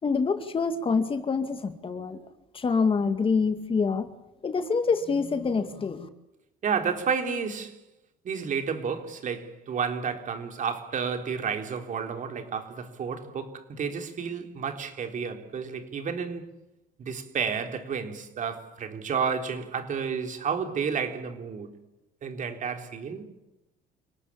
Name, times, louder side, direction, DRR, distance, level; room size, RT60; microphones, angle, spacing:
voice 1, 0.0-2.2 2.5-4.1 4.4-6.1, left 5 dB, 30° left, 2.2 m, -26 dB
voice 2, 6.6-7.8 8.2-16.5 17.0-21.7 22.2-23.2, right 6 dB, 50° right, 3.9 m, -31 dB
29.0 x 18.5 x 8.7 m
cardioid pair, 110°, 17 cm